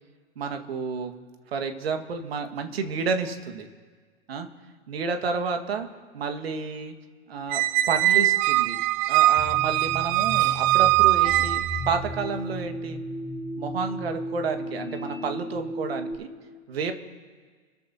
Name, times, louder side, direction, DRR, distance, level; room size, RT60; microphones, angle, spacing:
voice 1, 0.4-1.1 1.5-3.7 4.3-4.5 4.9-5.9 6.1-6.9 7.3-7.6 7.9-8.8 9.1-13.0 13.6-16.3 16.7-16.9, right 5 dB, 70° right, 6 dB, 1.8 m, -30 dB
Squeak, 7.5-12.0, right 16 dB, 40° right, 0.6 m, -21 dB
sound 1, 9.4-16.1, equal, 10° left, 3.7 m, -35 dB
29.5 x 13.5 x 2.9 m, 1.5 s
figure-of-eight pair, 95°, 31 cm